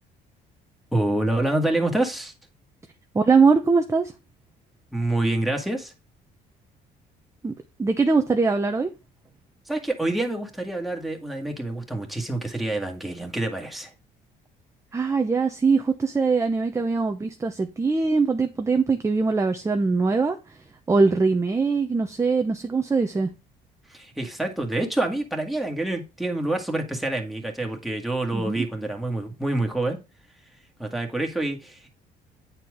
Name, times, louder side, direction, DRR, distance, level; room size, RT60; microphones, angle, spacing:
voice 1, 0.9-2.3 4.9-5.9 9.7-13.9 23.9-30.0 30.8-31.9, right 2 dB, ahead, 1.9 m, -27 dB
voice 2, 3.1-4.1 7.4-7.5 7.8-8.9 14.9-20.6 20.9-23.3 28.3-28.6, right 4 dB, 15° right, 0.8 m, -22 dB
9.1 x 4.4 x 4.9 m
cardioid pair, 110°, 17 cm